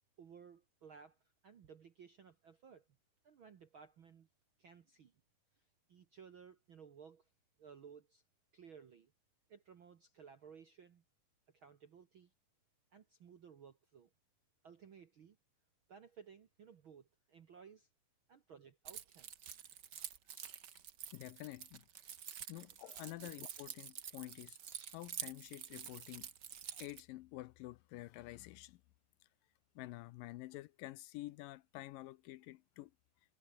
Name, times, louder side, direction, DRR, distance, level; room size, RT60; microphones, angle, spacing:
voice 1, 0.2-2.9 3.2-4.3 4.6-5.1 5.5-7.3 7.6-8.2 8.5-9.1 9.5-11.0 11.5-12.3 12.9-14.1 14.6-15.4 15.9-17.9 18.3-19.3 22.6-22.7 23.2-23.3, right 7 dB, 60° right, 1.4 m, -58 dB
Keys jangling, 18.9-27.0, right 8 dB, 90° right, 0.9 m, -49 dB
voice 2, 21.1-21.9 22.5-24.6 24.9-26.3 26.7-28.8 29.8-32.9, left 17 dB, 80° left, 2.3 m, -49 dB
omnidirectional pair, 4.2 m